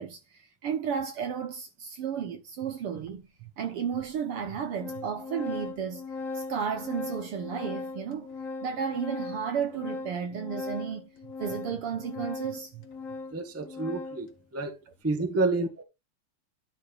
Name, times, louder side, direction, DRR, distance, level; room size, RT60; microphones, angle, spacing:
voice 1, 0.0-6.0 6.3-8.3 8.6-11.1 11.4-12.9, right 7 dB, 60° right, 1.6 m, -33 dB
Organ, 3.1-3.2 4.0-4.1 4.4-14.3, left 3 dB, 50° left, 1.0 m, -39 dB
voice 2, 13.3-14.8 15.0-15.8, right 3 dB, 10° right, 0.8 m, -29 dB
11.5 x 4.4 x 4.5 m
omnidirectional pair, 3.3 m